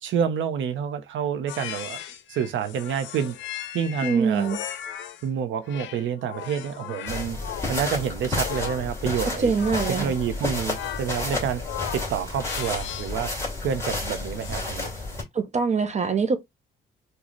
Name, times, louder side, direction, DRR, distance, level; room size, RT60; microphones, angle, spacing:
voice 1, 0.0-2.0 2.3-3.4 3.7-4.5 5.2-7.4 7.7-9.5 9.9-11.6 11.9-13.3 13.6-14.9, right 8 dB, 75° right, 0.7 m, -28 dB
sound 1, 1.5-5.3 5.7-13.3 14.4-15.0, left 11 dB, 70° left, 0.5 m, -38 dB
voice 2, 4.0-4.6 9.4-10.1 15.3-16.4, right 5 dB, 35° right, 0.6 m, -23 dB
sound 2, 7.1-15.2, left 2 dB, 15° left, 2.1 m, -31 dB
3.9 x 2.3 x 3.0 m
cardioid pair, 90°, 20 cm